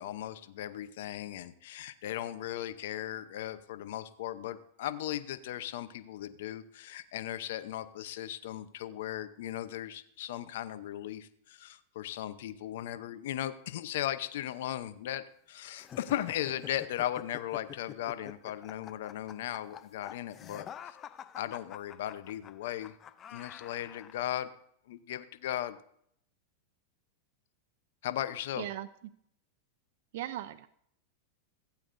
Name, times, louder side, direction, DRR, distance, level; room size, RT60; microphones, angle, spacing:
voice 1, 0.0-21.0 21.4-23.0 23.3-24.5 24.9-25.8 28.0-28.7, left 12 dB, 70° left, 12 dB, 0.7 m, -37 dB
sound 1, 15.8-24.2, left 9 dB, 30° left, 0.5 m, -48 dB
voice 2, 28.5-28.9 30.1-30.7, right 13 dB, 65° right, 12 dB, 0.5 m, -38 dB
16.0 x 8.5 x 2.6 m, 0.69 s
supercardioid pair, 130°, 0 cm